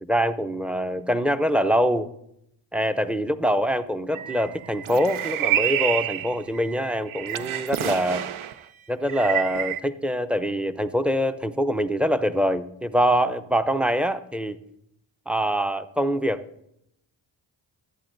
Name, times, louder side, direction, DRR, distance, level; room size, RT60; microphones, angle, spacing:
voice 1, 0.0-2.1 2.7-8.2 8.9-14.6 15.3-16.5, equal, ahead, 12 dB, 0.5 m, -24 dB
sound 1, 4.1-8.6 9.1-9.8, right 11 dB, 75° right, 0.6 m, -28 dB
13.5 x 8.3 x 2.6 m, 0.76 s
cardioid pair, 45°, 49 cm